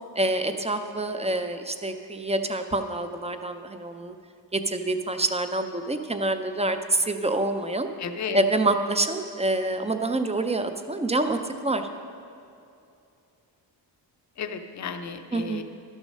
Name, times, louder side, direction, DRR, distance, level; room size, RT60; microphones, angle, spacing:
voice 1, 0.2-4.1 4.5-7.9 8.3-11.9 15.3-15.6, right 2 dB, 15° right, 7 dB, 0.3 m, -26 dB
voice 2, 8.0-8.4 14.4-15.6, left 6 dB, 40° left, 7 dB, 0.6 m, -33 dB
12.0 x 6.4 x 6.4 m, 2.6 s
wide cardioid pair, 170°, 45 cm